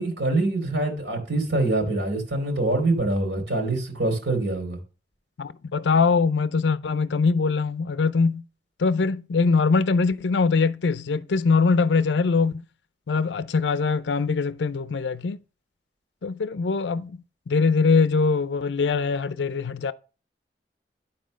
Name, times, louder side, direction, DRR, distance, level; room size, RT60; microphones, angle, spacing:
voice 1, 0.0-4.8, right 2 dB, 80° right, 2.9 m, -25 dB
voice 2, 5.4-8.4 8.8-12.6 13.1-15.4 16.2-19.9, left 4 dB, 90° left, 0.5 m, -22 dB
11.5 x 4.3 x 6.3 m
head